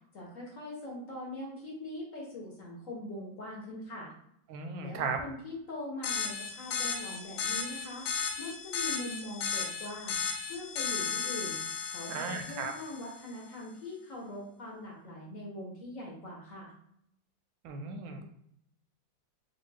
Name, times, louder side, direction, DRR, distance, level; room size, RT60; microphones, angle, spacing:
voice 1, 0.1-4.1 4.8-10.2 10.5-11.6 11.9-16.7, left 1 dB, 55° left, -3 dB, 1.0 m, -42 dB
voice 2, 4.5-5.2 12.1-12.7 17.6-18.2, right 4 dB, 85° right, 5 dB, 1.3 m, -35 dB
sound 1, 6.0-13.2, left 6 dB, 75° left, 1.2 m, -35 dB
3.3 x 2.4 x 3.2 m, 0.72 s
omnidirectional pair, 2.0 m